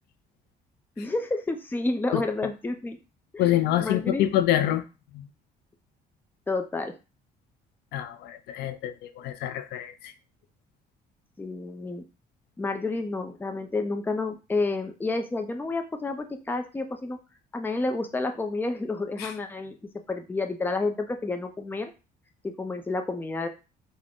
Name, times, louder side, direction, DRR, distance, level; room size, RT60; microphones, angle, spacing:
voice 1, 1.0-3.0 3.3-3.4 3.8-4.2 6.5-6.9 11.4-12.0 12.6-17.2 17.5-19.8 20.1-21.9 22.4-23.5, left 3 dB, 10° left, 0.5 m, -30 dB
voice 2, 3.4-4.8 5.1-5.3 7.9-10.1 19.2-19.3, left 12 dB, 75° left, 0.4 m, -26 dB
3.7 x 2.1 x 3.6 m
cardioid pair, 110°, 17 cm